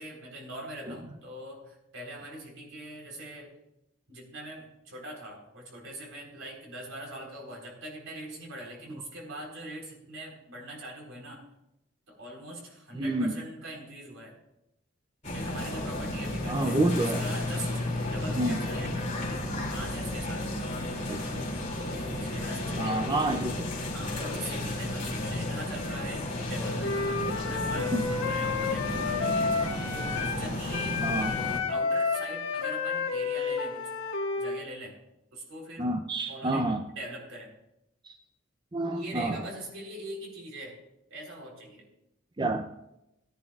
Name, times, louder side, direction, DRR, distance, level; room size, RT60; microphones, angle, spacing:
voice 1, 0.0-3.5 4.1-11.4 12.1-14.3 15.3-16.8 17.2-17.7 18.1-18.9 19.7-20.6 21.8-23.4 23.9-29.5 30.1-31.0 31.7-33.9 34.4-35.0 35.3-35.9 36.3-36.7 37.0-37.5 38.9-40.8 41.1-41.9, right 1 dB, 75° right, -1 dB, 4.0 m, -42 dB
voice 2, 12.9-13.3 16.5-17.2 18.3-18.6 21.1-21.5 21.8-21.9 22.8-23.7 27.8-28.1 31.0-31.3 35.8-36.8 38.0-38.2 38.7-39.4 42.4-42.7, right 2 dB, 25° right, 6 dB, 0.5 m, -29 dB
sound 1, 15.2-31.6, left 1 dB, 35° left, 2.6 m, -33 dB
Wind instrument woodwind instrument, 26.8-30.4 30.7-34.6, left 4 dB, 85° left, 1.6 m, -30 dB
17.5 x 10.5 x 2.4 m, 0.85 s
head